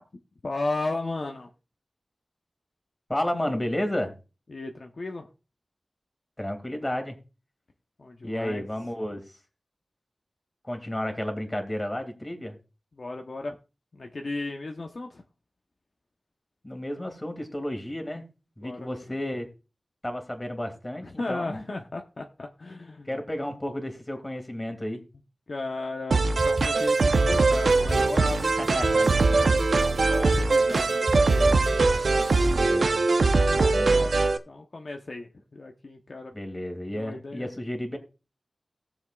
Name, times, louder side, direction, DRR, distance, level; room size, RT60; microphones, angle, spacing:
voice 1, 0.4-1.5 4.5-5.3 8.0-8.6 13.0-13.6 13.9-15.2 18.6-19.0 21.0-23.1 25.5-29.0 30.0-31.7 32.4-32.8 34.5-36.3 36.9-37.5, left 2 dB, 60° left, 3 dB, 0.9 m, -35 dB
voice 2, 3.1-4.1 6.4-7.2 8.2-9.4 10.6-12.6 16.6-18.2 18.6-19.5 20.0-21.6 23.1-25.0 28.6-29.1 32.4-33.1 33.5-34.2 36.3-38.0, left 1 dB, 20° left, 5 dB, 2.3 m, -32 dB
sound 1, 26.1-34.4, right 3 dB, 80° right, 0.8 m, -22 dB
sound 2, 26.4-32.9, right 1 dB, 65° right, 2.9 m, -34 dB
18.5 x 7.1 x 2.4 m, 0.31 s
wide cardioid pair, 80°, 0 cm